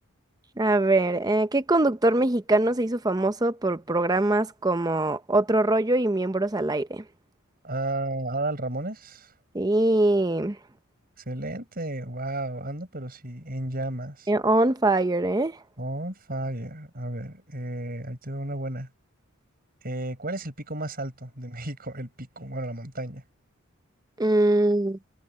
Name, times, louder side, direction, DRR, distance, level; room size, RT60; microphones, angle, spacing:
voice 1, 0.6-7.0 9.5-10.6 14.3-15.6 24.2-25.0, right 2 dB, 20° right, 0.7 m, -23 dB
voice 2, 7.6-9.3 11.2-14.3 15.8-18.9 19.8-23.2, right 1 dB, 45° right, 6.9 m, -33 dB
head